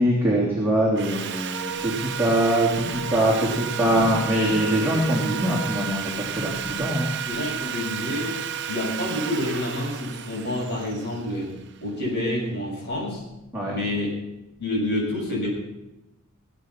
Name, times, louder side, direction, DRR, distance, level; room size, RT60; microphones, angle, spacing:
voice 1, 0.0-7.1 13.5-13.8, equal, 10° right, -6 dB, 3.1 m, -23 dB
Sawing, 1.0-12.0, right 8 dB, 55° right, 0.8 m, -32 dB
voice 2, 7.2-8.4 8.7-11.5 11.8-13.2 13.7-14.2 14.6-15.5, left 1 dB, 50° left, -4 dB, 6.8 m, -28 dB
19.0 x 8.4 x 5.9 m, 0.94 s
head